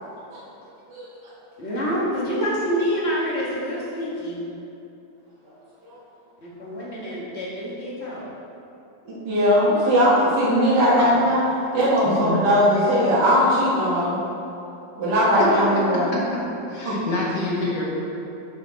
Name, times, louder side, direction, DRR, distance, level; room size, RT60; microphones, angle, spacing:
voice 1, 1.6-4.4 6.4-8.3, equal, 35° left, -6 dB, 2.0 m, -27 dB
voice 2, 9.1-11.4 11.7-14.2 15.0-16.1 16.9-17.0, equal, 70° right, -9 dB, 2.3 m, -19 dB
voice 3, 12.0-12.5 15.4-15.5 15.7-15.8 16.1-16.2 16.7-17.8, left 2 dB, 70° left, -5 dB, 2.2 m, -26 dB
10.0 x 5.9 x 4.1 m, 2.9 s
omnidirectional pair, 1.9 m